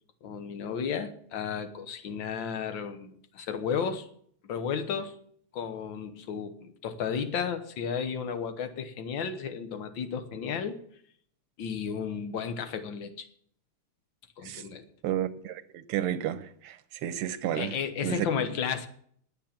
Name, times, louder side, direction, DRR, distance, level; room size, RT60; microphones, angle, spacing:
voice 1, 0.2-4.1 4.4-5.1 5.5-10.8 11.6-13.3 14.4-14.9 17.6-18.9, left 7 dB, 65° left, 9 dB, 1.8 m, -33 dB
voice 2, 15.0-17.8 18.0-18.3, right 11 dB, 85° right, 12 dB, 1.7 m, -32 dB
10.5 x 8.6 x 7.3 m, 0.63 s
omnidirectional pair, 2.4 m